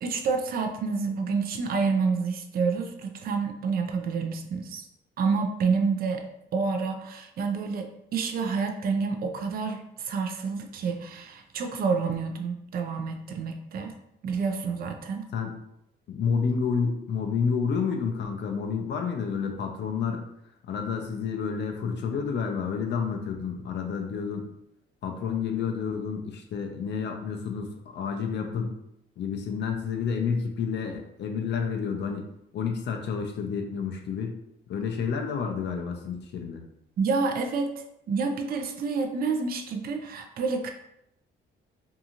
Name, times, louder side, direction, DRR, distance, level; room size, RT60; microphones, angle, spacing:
voice 1, 0.0-4.9 5.2-6.3 6.5-13.9 14.2-15.3 37.0-40.7, right 4 dB, 50° right, 5 dB, 0.4 m, -28 dB
voice 2, 16.1-20.2 20.7-24.5 25.0-28.7 29.2-32.2 32.5-34.4 34.7-36.6, left 6 dB, 65° left, 3 dB, 0.5 m, -30 dB
2.6 x 2.4 x 2.8 m, 0.79 s
cardioid pair, 90°, 20 cm